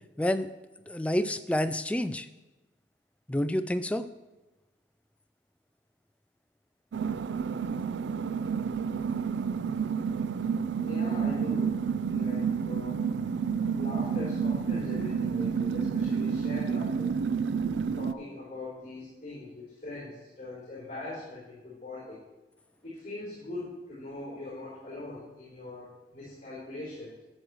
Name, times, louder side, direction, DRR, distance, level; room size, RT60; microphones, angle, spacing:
voice 1, 0.2-0.5 0.9-2.3 3.3-4.0, left 1 dB, 5° left, 11 dB, 0.3 m, -28 dB
sound 1, 6.9-18.1, right 6 dB, 80° right, 0.3 m, -30 dB
voice 2, 10.8-11.8 12.1-13.0 13.8-17.1 17.9-22.2 22.8-27.2, left 2 dB, 40° left, -9 dB, 3.5 m, -41 dB
11.5 x 7.8 x 3.1 m, 1.1 s
head